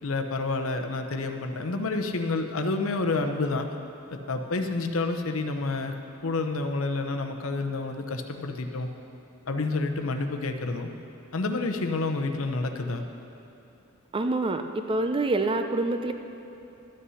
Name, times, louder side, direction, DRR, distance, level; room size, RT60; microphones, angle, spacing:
voice 1, 0.0-3.7 4.1-5.9 6.2-8.9 9.5-10.9 11.3-13.0, left 3 dB, 75° left, 5 dB, 0.8 m, -29 dB
voice 2, 14.1-14.6 14.9-16.1, right 2 dB, 25° right, 7 dB, 0.5 m, -26 dB
13.0 x 8.5 x 5.6 m, 2.9 s
head